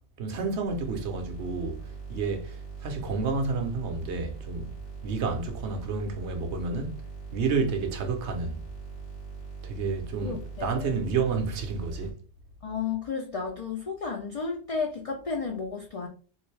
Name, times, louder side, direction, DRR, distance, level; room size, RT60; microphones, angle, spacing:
voice 1, 0.2-1.8 2.1-4.7 5.0-7.0 7.3-8.6 9.6-12.1, right 4 dB, 80° right, 1.0 m, -30 dB
sound 1, 0.6-12.1, right 5 dB, 65° left, 1.9 m, -41 dB
voice 2, 10.2-11.0 12.6-16.1, left 5 dB, 45° left, 0.5 m, -33 dB
3.8 x 2.6 x 3.2 m
omnidirectional pair, 1.1 m